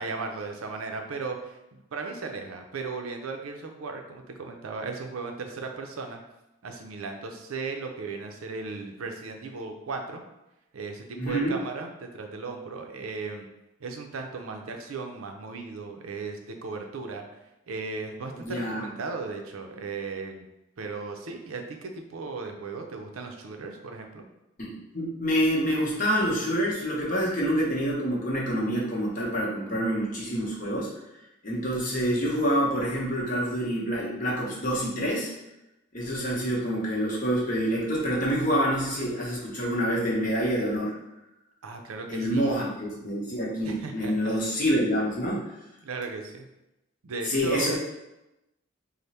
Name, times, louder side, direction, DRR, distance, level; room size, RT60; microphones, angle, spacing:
voice 1, 0.0-6.2 6.6-10.2 10.7-13.5 13.8-17.3 17.7-20.5 20.8-24.2 41.6-42.7 43.6-44.3 45.8-46.5 47.0-47.8, right 4 dB, 85° right, 4 dB, 0.5 m, -36 dB
voice 2, 11.1-11.5 18.4-18.9 24.6-30.9 31.4-35.3 35.9-40.9 42.1-45.4 47.3-47.8, equal, 40° left, -4 dB, 0.8 m, -27 dB
3.3 x 2.1 x 4.0 m, 0.93 s
head